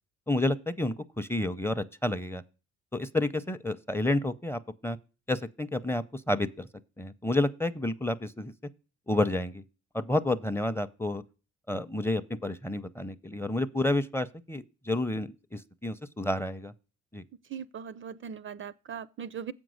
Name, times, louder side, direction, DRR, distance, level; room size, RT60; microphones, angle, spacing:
voice 1, 0.3-2.4 2.9-5.0 5.3-6.7 7.0-8.5 9.1-9.6 9.9-11.2 11.7-16.7 17.1-17.2, left 1 dB, 10° left, 0.5 m, -30 dB
voice 2, 17.5-19.5, right 7 dB, 40° right, 0.4 m, -39 dB
7.6 x 5.2 x 6.3 m
cardioid pair, 90°, 30 cm